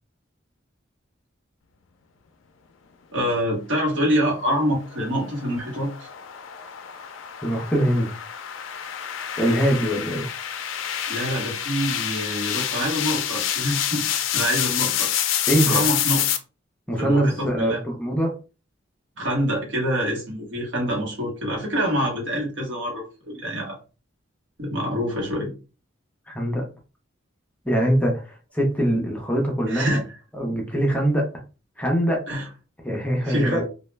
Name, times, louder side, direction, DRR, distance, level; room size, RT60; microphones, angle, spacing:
voice 1, 3.1-6.1 11.1-15.1 15.7-16.2 17.0-17.8 19.2-23.8 24.6-25.5 29.7-30.0 32.3-32.4 33.2-33.6, equal, 70° right, -1 dB, 1.0 m, -26 dB
sound 1, 4.3-16.4, left 10 dB, 70° left, 0.4 m, -28 dB
voice 2, 7.4-8.1 9.4-10.3 15.5-15.8 16.9-18.4 26.3-26.7 27.6-30.0 30.3-31.3 31.8-32.2 32.8-33.6, right 1 dB, 5° left, -1 dB, 0.5 m, -23 dB
2.2 x 2.0 x 3.1 m, 0.33 s
head